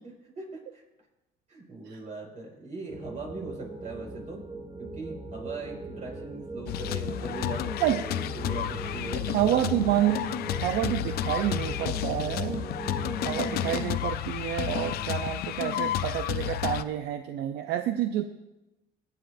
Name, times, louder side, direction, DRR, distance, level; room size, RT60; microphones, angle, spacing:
voice 1, 0.2-0.8 1.5-4.4 4.8-9.7 12.7-13.6 14.9-15.3, right 3 dB, 45° right, -1 dB, 5.1 m, -40 dB
sound 1, 2.9-13.8, right 2 dB, 20° right, 2.4 m, -39 dB
sound 2, 6.7-16.8, left 12 dB, 65° left, 0.5 m, -31 dB
voice 2, 9.3-10.3 10.6-12.7 13.2-18.2, right 12 dB, 80° right, 7 dB, 0.6 m, -28 dB
24.0 x 9.1 x 2.6 m, 0.99 s
cardioid pair, 110°, 17 cm